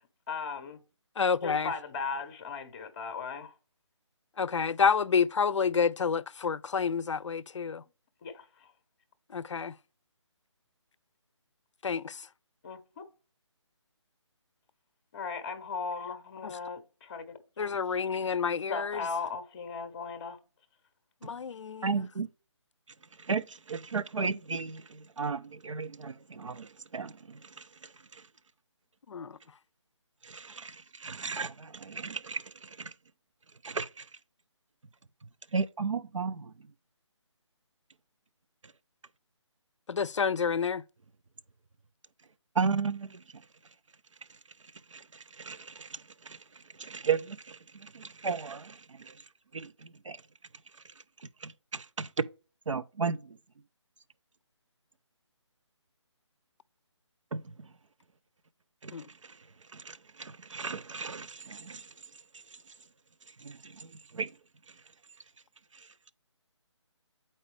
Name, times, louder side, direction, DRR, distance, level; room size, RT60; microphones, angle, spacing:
voice 1, 0.3-0.8 1.4-3.5 8.2-8.4 12.6-12.8 15.1-17.4 18.7-20.4, left 4 dB, 25° left, 0.6 m, -37 dB
voice 2, 1.2-1.7 4.4-7.8 9.3-9.7 11.8-12.3 16.4-16.6 17.6-19.1 21.2-21.9 29.1-29.4 39.9-40.8 58.9-59.1, left 6 dB, 75° left, 0.4 m, -29 dB
voice 3, 21.8-22.3 23.2-28.2 30.2-32.9 33.6-34.1 35.5-36.5 42.6-43.2 44.9-46.4 46.8-49.1 49.5-50.2 51.4-52.3 52.7-53.4 57.3-57.7 58.8-58.9 59.2-59.3 59.7-61.9 63.4-64.3 65.7-65.9, right 5 dB, 85° right, 0.5 m, -35 dB
8.0 x 4.3 x 3.2 m
figure-of-eight pair, 155°, 16 cm